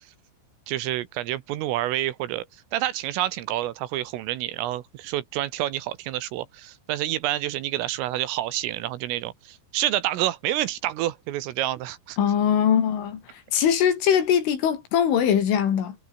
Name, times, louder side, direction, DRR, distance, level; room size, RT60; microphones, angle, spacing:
voice 1, 0.7-2.5 2.7-12.2, right 14 dB, 80° right, 3.9 m, -28 dB
voice 2, 12.2-13.2 13.5-16.0, left 8 dB, 70° left, 6.0 m, -21 dB
omnidirectional pair, 5.9 m